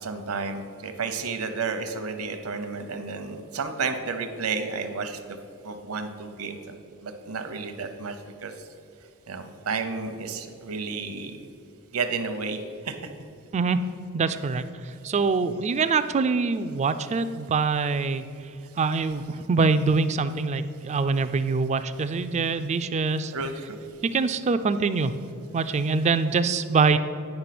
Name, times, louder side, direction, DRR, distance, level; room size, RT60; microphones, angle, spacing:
voice 1, 0.0-5.4 5.6-6.8 7.0-8.7 9.3-11.4 11.9-13.0 23.3-23.8, right 4 dB, 70° right, 7 dB, 0.8 m, -32 dB
voice 2, 14.1-18.3 18.8-23.3 24.0-25.1 25.5-27.0, right 4 dB, 30° right, 11 dB, 0.3 m, -24 dB
9.6 x 5.2 x 6.0 m, 2.5 s
head